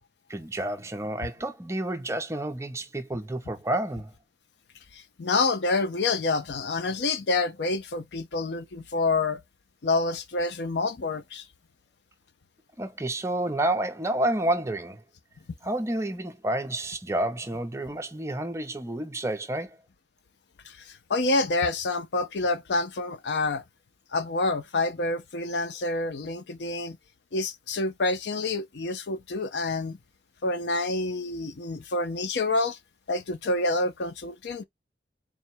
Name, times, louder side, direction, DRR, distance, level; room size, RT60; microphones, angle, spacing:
voice 1, 0.3-4.1 12.8-15.0 15.6-19.8, right 1 dB, 15° right, 0.6 m, -29 dB
voice 2, 4.9-9.4 9.8-11.5 20.6-23.6 24.1-27.0 27.3-30.0 30.4-32.8 33.1-34.6, left 3 dB, 70° left, 0.6 m, -28 dB
3.8 x 2.2 x 4.3 m
head